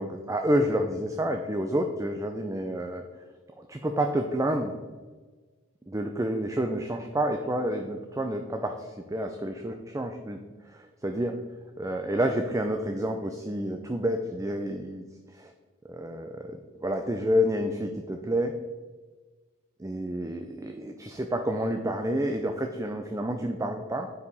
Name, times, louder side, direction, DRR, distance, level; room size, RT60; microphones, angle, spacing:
voice 1, 0.0-3.0 3.6-4.7 5.9-11.4 11.8-15.5 15.9-18.6 19.8-24.1, equal, 15° right, 5 dB, 0.4 m, -29 dB
9.4 x 4.9 x 5.4 m, 1.3 s
head